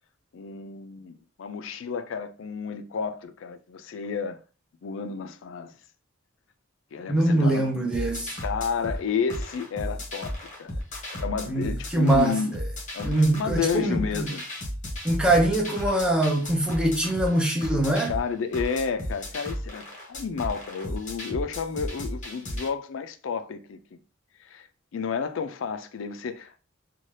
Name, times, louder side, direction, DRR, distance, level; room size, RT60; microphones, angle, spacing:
voice 1, 0.3-4.4 4.8-5.7 6.9-7.9 8.4-10.8 11.1-12.6 12.9-14.4 18.1-24.0 24.4-24.7 24.9-26.6, left 6 dB, 70° left, 0.4 m, -31 dB
voice 2, 7.1-8.4 11.5-12.6 13.0-14.3 15.0-18.1, right 1 dB, 5° right, 0.7 m, -23 dB
sound 1, 7.9-22.7, equal, 40° left, 0.9 m, -34 dB
2.7 x 2.3 x 3.2 m
head